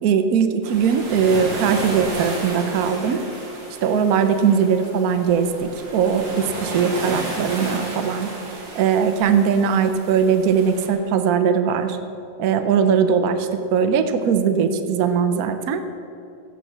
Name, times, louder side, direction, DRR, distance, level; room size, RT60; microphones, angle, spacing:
voice 1, 0.0-3.2 3.8-8.3 8.7-12.0 12.4-15.8, right 7 dB, 60° right, 8 dB, 1.1 m, -20 dB
sound 1, 0.6-10.9, right 1 dB, 90° right, 2.9 m, -33 dB
16.0 x 6.0 x 7.3 m, 2.6 s
omnidirectional pair, 1.9 m